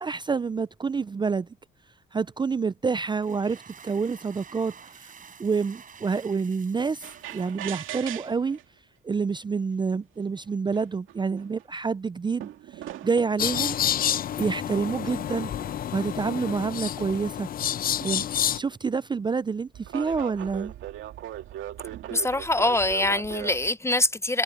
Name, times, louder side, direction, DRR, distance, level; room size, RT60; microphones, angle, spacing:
voice 1, 0.0-1.5 2.1-5.1 5.4-8.6 9.0-13.8 14.4-15.5 15.9-17.5 18.0-20.7, right 5 dB, 25° right, 0.4 m, -28 dB
sound 1, 3.1-8.7, right 6 dB, 45° right, 4.8 m, -50 dB
sound 2, 7.0-8.6 9.6-9.7 10.4-10.5 10.7-11.6 12.4-13.5 14.4-15.9 18.5-18.7 19.7-23.7, right 12 dB, 85° right, 2.3 m, -39 dB
sound 3, 13.4-18.6, left 10 dB, 50° left, 0.5 m, -29 dB
voice 2, 22.1-24.4, left 2 dB, 15° left, 0.7 m, -24 dB
cardioid pair, 90°, 20 cm